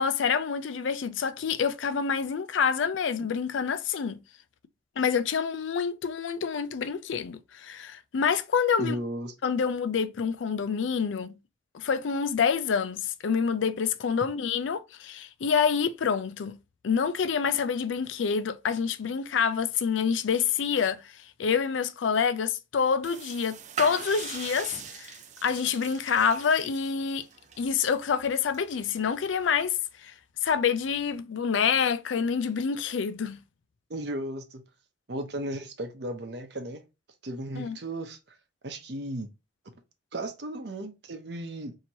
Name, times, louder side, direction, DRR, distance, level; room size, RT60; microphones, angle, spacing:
voice 1, 0.0-4.2 5.0-9.0 9.4-11.3 11.7-16.6 16.8-21.0 21.4-25.1 25.4-27.3 27.6-29.8 30.0-30.1 30.4-33.4 37.6-37.8, left 6 dB, 80° left, 0.4 m, -27 dB
voice 2, 8.8-9.3 33.9-34.6 35.1-36.9 37.2-38.4 38.6-39.3 40.1-41.8, right 1 dB, 60° right, 0.7 m, -35 dB
sound 1, 23.0-29.7, right 7 dB, 40° right, 0.3 m, -42 dB
2.9 x 2.8 x 4.4 m
head